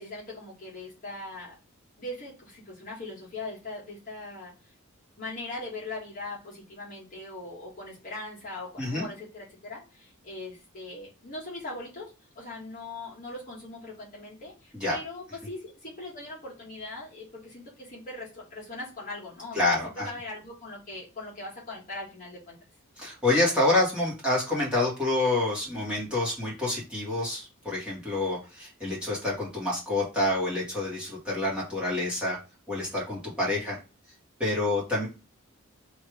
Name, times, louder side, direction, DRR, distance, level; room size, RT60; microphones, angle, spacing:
voice 1, 0.0-1.6 2.0-4.5 5.2-22.6 33.5-33.8, left 2 dB, 40° left, -5 dB, 1.7 m, -40 dB
voice 2, 19.5-20.1 23.0-32.4 32.7-33.8 34.4-35.1, left 2 dB, 5° right, -6 dB, 1.9 m, -27 dB
3.2 x 3.1 x 4.8 m, 0.30 s
head